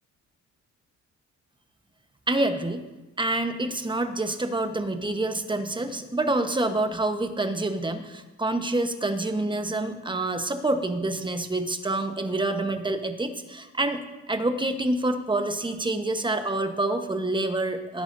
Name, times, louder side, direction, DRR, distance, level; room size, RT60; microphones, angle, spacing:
voice 1, 2.3-2.8 3.2-14.0 14.3-18.0, right 2 dB, 15° right, 7 dB, 1.2 m, -27 dB
19.5 x 10.5 x 2.7 m, 1.1 s
cardioid pair, 90°, 30 cm